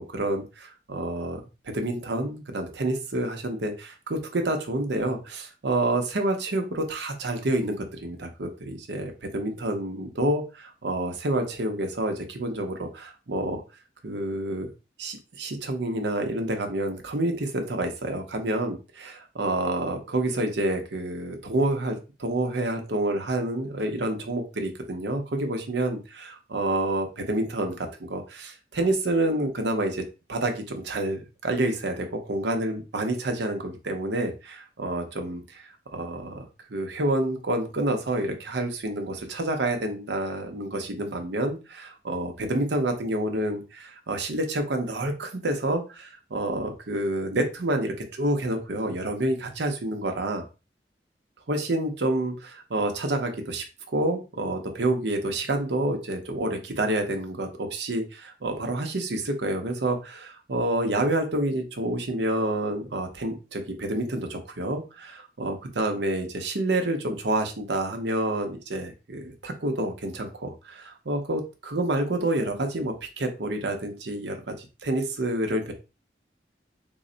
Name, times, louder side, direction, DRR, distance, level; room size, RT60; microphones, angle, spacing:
voice 1, 0.0-1.4 1.7-13.6 14.0-14.7 15.0-30.0 30.3-36.4 36.7-50.4 51.5-53.6 53.9-75.7, right 1 dB, 80° right, 4 dB, 0.8 m, -28 dB
3.9 x 2.1 x 3.8 m, 0.30 s
head